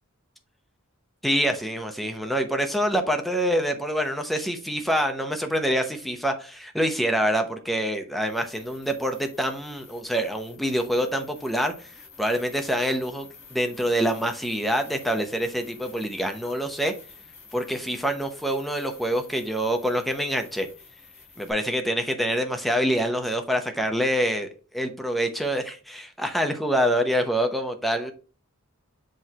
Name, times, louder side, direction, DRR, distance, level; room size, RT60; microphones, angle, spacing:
voice 1, 1.2-11.9 12.2-13.3 13.5-16.9 17.5-20.7 21.4-24.5 24.7-28.1, equal, ahead, 0.8 m, -26 dB
sound 1, 8.2-21.5, left 5 dB, 60° left, 3.8 m, -50 dB
8.0 x 3.2 x 4.3 m
head